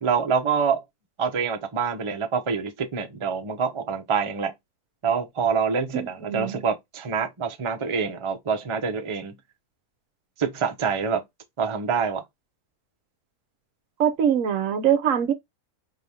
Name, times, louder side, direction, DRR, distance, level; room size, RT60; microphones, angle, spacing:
voice 1, 0.0-0.8 1.2-4.5 5.0-9.3 10.4-11.2 11.6-12.2, right 6 dB, 35° right, 0.4 m, -26 dB
voice 2, 5.9-6.6 14.0-15.3, right 9 dB, 65° right, 0.9 m, -23 dB
4.9 x 2.8 x 2.7 m
omnidirectional pair, 1.6 m